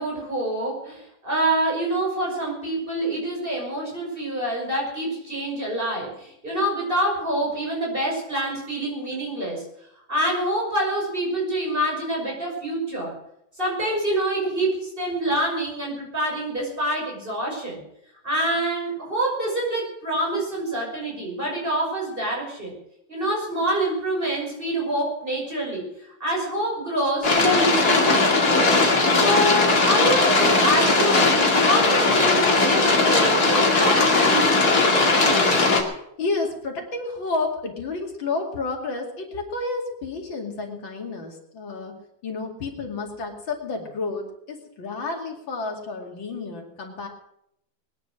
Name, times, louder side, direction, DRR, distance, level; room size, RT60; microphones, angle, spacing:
voice 1, 0.0-9.6 10.1-13.2 13.6-17.8 18.2-22.7 23.1-28.7 29.1-34.8, right 1 dB, 25° right, -2 dB, 6.2 m, -26 dB
sound 1, 27.2-35.8, left 3 dB, 55° left, 2.9 m, -18 dB
voice 2, 36.2-42.0 42.2-47.1, left 3 dB, 80° left, 2 dB, 3.2 m, -30 dB
20.5 x 10.5 x 6.3 m, 0.74 s
omnidirectional pair, 2.1 m